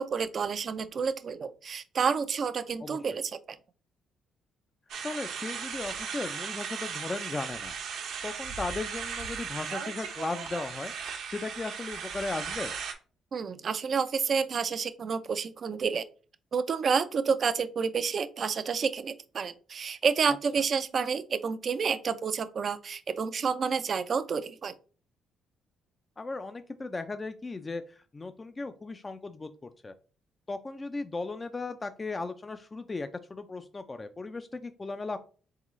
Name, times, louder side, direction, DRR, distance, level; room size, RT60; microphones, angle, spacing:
voice 1, 0.0-3.6 13.3-16.0 16.5-24.7, right 6 dB, 50° right, 11 dB, 0.4 m, -29 dB
sound 1, 4.9-12.9, right 6 dB, 75° right, 0.9 m, -37 dB
voice 2, 5.0-7.7 8.2-10.9 11.3-12.7 26.2-29.9 30.5-35.2, left 3 dB, 25° left, 8 dB, 0.4 m, -36 dB
3.7 x 3.7 x 3.1 m, 0.38 s
cardioid pair, 80°, 0 cm